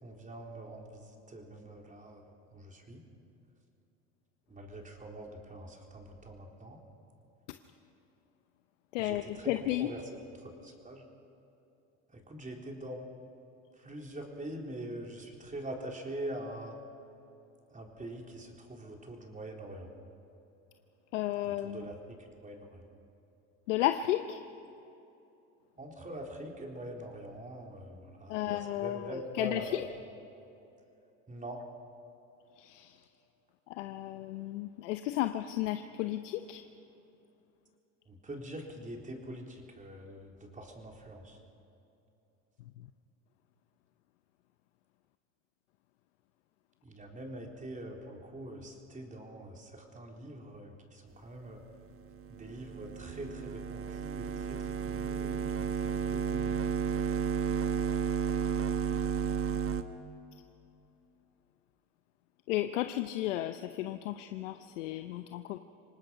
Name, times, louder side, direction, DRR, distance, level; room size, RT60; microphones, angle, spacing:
voice 1, 0.0-2.2 2.5-3.0 4.5-6.8 9.0-10.0 10.4-11.0 12.1-13.0 13.8-16.8 17.7-19.9 21.6-22.2 22.4-22.8 25.8-29.8 31.3-31.6 38.1-41.4 46.8-51.6 52.3-56.6, right 1 dB, 20° right, 1 dB, 3.8 m, -44 dB
voice 2, 8.9-9.9 21.1-21.9 23.7-24.4 28.3-29.8 32.6-33.0 33.7-36.6 62.5-65.6, left 14 dB, 90° left, 9 dB, 0.8 m, -33 dB
sound 1, 52.1-59.8, right 7 dB, 40° right, 1.2 m, -32 dB
25.5 x 19.0 x 5.8 m, 2.8 s
supercardioid pair, 85°, 36 cm